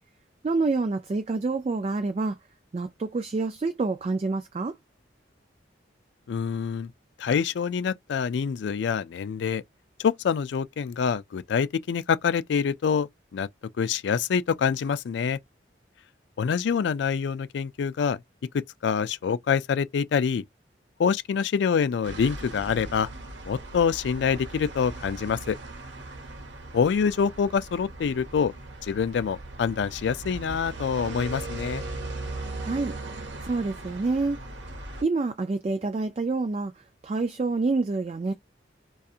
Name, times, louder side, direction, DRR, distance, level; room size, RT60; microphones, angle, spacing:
voice 1, 0.4-2.4 2.7-4.7 32.6-32.9 33.4-34.4 35.0-38.3, right 3 dB, 35° right, 0.3 m, -27 dB
voice 2, 6.3-6.9 7.2-9.6 10.0-13.5 13.8-15.4 16.4-18.2 18.8-20.4 21.0-23.1 23.5-25.6 26.7-28.5 28.8-31.8, left 6 dB, 65° left, 0.3 m, -26 dB
sound 1, 22.0-35.0, right 2 dB, 75° right, 0.9 m, -39 dB
2.7 x 2.3 x 2.4 m
head